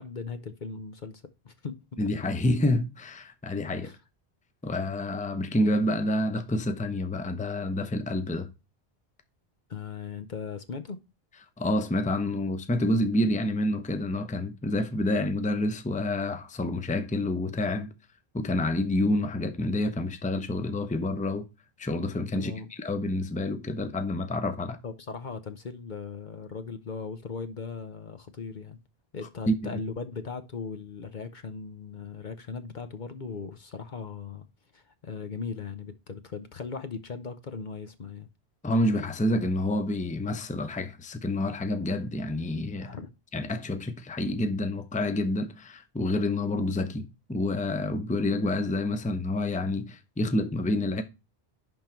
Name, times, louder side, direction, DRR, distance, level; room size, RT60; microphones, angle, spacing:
voice 1, 0.0-2.0 3.8-4.0 9.7-11.0 22.3-22.7 24.8-28.8 29.1-34.5 34.7-38.3 42.8-43.1, left 5 dB, 50° left, 0.9 m, -38 dB
voice 2, 2.0-3.9 4.6-8.5 11.6-17.9 18.3-21.5 21.8-22.5 22.8-24.8 29.5-29.7 38.6-42.9 43.3-51.0, left 1 dB, 10° left, 0.7 m, -28 dB
11.0 x 3.8 x 4.4 m
omnidirectional pair, 1.1 m